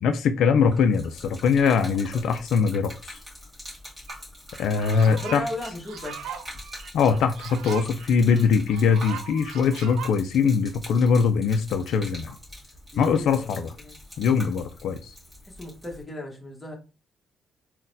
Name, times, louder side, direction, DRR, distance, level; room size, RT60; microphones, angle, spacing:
voice 1, 0.0-3.2 4.6-5.5 6.9-12.4 13.0-13.7 14.2-15.1, left 6 dB, 75° left, 0.3 m, -22 dB
Gurgling / Liquid, 0.6-16.0, left 1 dB, 10° right, 1.7 m, -44 dB
sound 1, 4.1-4.2 4.5-10.1, right 8 dB, 85° right, 0.4 m, -39 dB
voice 2, 5.1-6.2 12.9-13.9 15.4-16.8, left 2 dB, 15° left, 1.3 m, -36 dB
3.9 x 2.1 x 2.6 m
cardioid pair, 90°, 0 cm